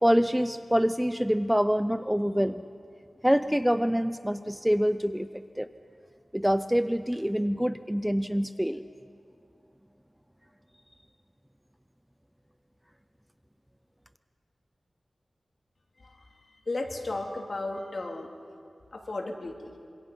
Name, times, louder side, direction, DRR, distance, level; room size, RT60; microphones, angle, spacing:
voice 1, 0.0-2.6 3.2-5.7 6.3-8.8, equal, 5° right, 11 dB, 0.5 m, -26 dB
voice 2, 16.7-18.3 18.9-19.7, left 2 dB, 55° left, 1 dB, 2.5 m, -34 dB
26.5 x 24.0 x 5.5 m, 2.4 s
wide cardioid pair, 105°, 0 cm